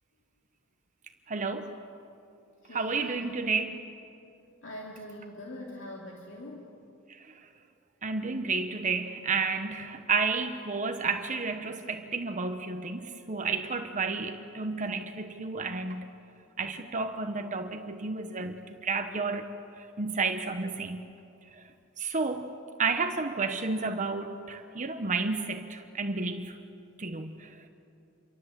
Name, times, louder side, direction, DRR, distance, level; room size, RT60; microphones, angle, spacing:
voice 1, 1.3-1.7 2.7-3.8 7.1-7.3 8.0-16.1 16.6-19.5 19.8-21.1 21.5-21.6 22.0-22.5 22.8-26.6 27.0-27.7, right 4 dB, 40° right, 7 dB, 1.1 m, -31 dB
voice 2, 2.6-3.3 4.6-6.8, left 1 dB, 65° left, -1 dB, 2.7 m, -43 dB
28.0 x 24.0 x 8.2 m, 2.7 s
head